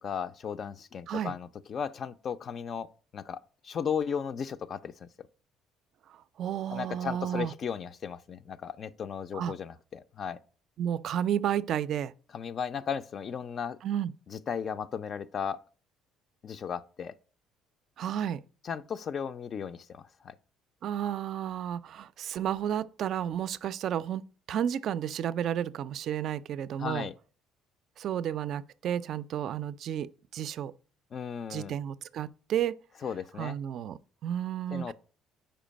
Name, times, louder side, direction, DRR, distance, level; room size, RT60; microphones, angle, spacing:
voice 1, 0.0-2.9 3.1-5.1 6.7-10.4 12.3-13.8 14.3-15.6 16.4-17.1 18.6-20.4 26.8-27.1 31.1-31.7 33.0-33.6 34.7-34.9, left 7 dB, 50° left, 0.3 m, -35 dB
voice 2, 6.1-7.5 9.3-9.5 10.8-12.1 13.8-14.1 18.0-18.4 20.8-24.2 24.5-27.1 28.0-30.7 31.5-32.8 33.4-34.9, right 10 dB, 60° right, 0.3 m, -32 dB
5.0 x 4.5 x 5.0 m
supercardioid pair, 85°, 0 cm